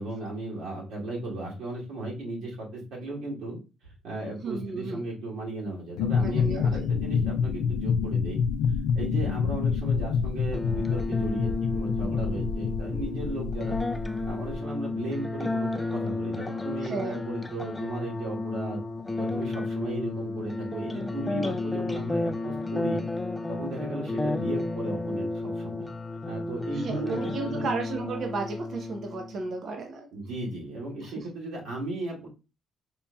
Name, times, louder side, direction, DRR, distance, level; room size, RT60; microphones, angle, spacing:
voice 1, 0.0-3.6 4.0-8.4 8.9-13.8 14.2-18.8 19.2-23.0 23.5-25.3 25.6-25.9 26.3-27.7 30.1-32.3, right 2 dB, 85° right, -4 dB, 1.7 m, -36 dB
voice 2, 4.4-5.0 6.2-6.9 16.8-17.2 26.7-30.1 31.0-31.2, right 3 dB, 60° right, 4 dB, 0.6 m, -33 dB
sound 1, 6.0-14.6, left 6 dB, 90° left, 0.3 m, -27 dB
sound 2, 10.5-29.5, left 2 dB, 15° left, 0.3 m, -32 dB
4.4 x 2.7 x 2.2 m, 0.30 s
cardioid pair, 90°, 0 cm